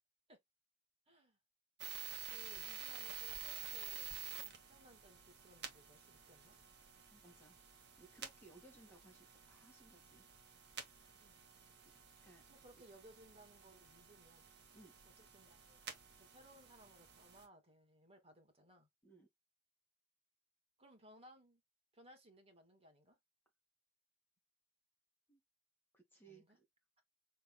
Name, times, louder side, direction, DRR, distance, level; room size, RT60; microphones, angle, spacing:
voice 1, 1.1-1.4 2.3-4.1 4.4-6.6 11.2-11.4 12.5-14.5 15.2-15.9 16.2-18.9 20.8-21.6 21.9-23.2 26.3-26.6, right 1 dB, 30° right, 2.2 m, -63 dB
sound 1, 1.8-17.5, right 7 dB, 50° right, 1.7 m, -51 dB
voice 2, 7.1-7.6 8.0-10.3 12.2-12.4 14.7-15.0 19.0-19.3 25.3-25.4 25.9-26.6, right 2 dB, 10° left, 1.7 m, -63 dB
6.6 x 3.6 x 2.2 m
head